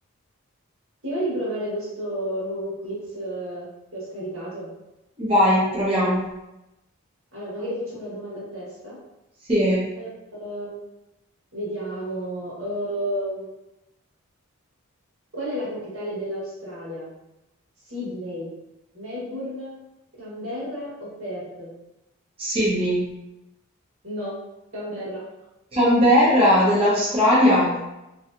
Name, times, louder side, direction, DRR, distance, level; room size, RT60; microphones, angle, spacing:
voice 1, 1.0-4.7 7.3-9.0 10.0-10.1 10.4-10.8 11.5-13.5 15.3-17.1 17.9-18.5 18.9-19.8 20.1-21.7 24.0-24.4 24.7-25.3 27.3-27.7, equal, 65° right, -7 dB, 1.4 m, -32 dB
voice 2, 5.2-6.2 9.5-9.9 22.4-23.1 25.7-27.7, equal, 25° right, -10 dB, 0.8 m, -19 dB
3.1 x 2.7 x 2.5 m, 0.94 s
head